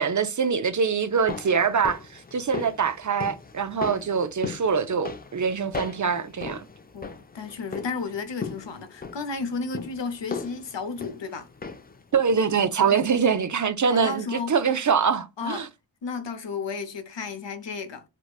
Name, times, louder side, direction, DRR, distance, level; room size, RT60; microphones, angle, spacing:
voice 1, 0.0-6.7 12.1-15.7, right 6 dB, 45° right, 0.4 m, -24 dB
sound 1, 1.0-12.0 12.3-12.4, left 5 dB, 20° left, 0.4 m, -38 dB
voice 2, 6.9-11.5 12.8-13.0 13.9-14.5 15.4-15.7 16.0-18.0, left 4 dB, 70° left, 0.7 m, -33 dB
4.5 x 2.1 x 2.3 m
cardioid pair, 45°, 45 cm